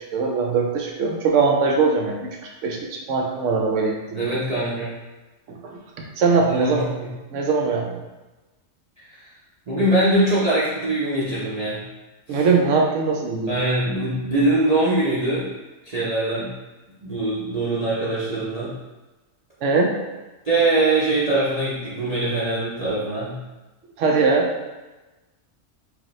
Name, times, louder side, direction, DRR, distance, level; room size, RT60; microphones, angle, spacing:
voice 1, 0.1-4.3 5.5-5.8 6.2-6.9 7.3-8.0 12.3-13.5 19.6-20.0 24.0-24.5, right 4 dB, 70° right, 0 dB, 0.9 m, -21 dB
voice 2, 4.1-5.0 6.5-7.1 9.1-9.3 9.7-11.8 12.3-12.4 13.5-15.5 15.8-16.5 17.0-18.7 20.5-23.3, right 2 dB, 40° right, -9 dB, 0.6 m, -22 dB
4.9 x 2.2 x 3.0 m, 1.1 s
omnidirectional pair, 1.4 m